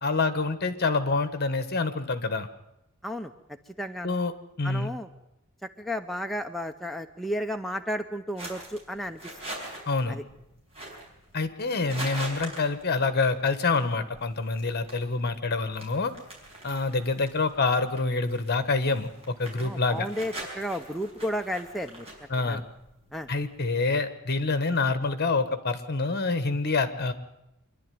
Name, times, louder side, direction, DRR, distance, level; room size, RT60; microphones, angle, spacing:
voice 1, 0.0-2.5 4.0-4.3 4.6-4.9 9.9-10.2 11.3-16.1 16.6-20.1 22.3-22.6 23.3-27.1, left 3 dB, 50° left, 11 dB, 1.5 m, -26 dB
voice 2, 3.8-4.1 4.6-5.1 5.8-9.2 10.1-10.2 16.7-16.8 19.6-22.1 22.5-22.6 23.1-23.3, equal, ahead, 4 dB, 0.6 m, -33 dB
sound 1, 8.4-23.7, right 1 dB, 30° right, 5.8 m, -44 dB
25.5 x 11.5 x 9.4 m, 0.86 s
head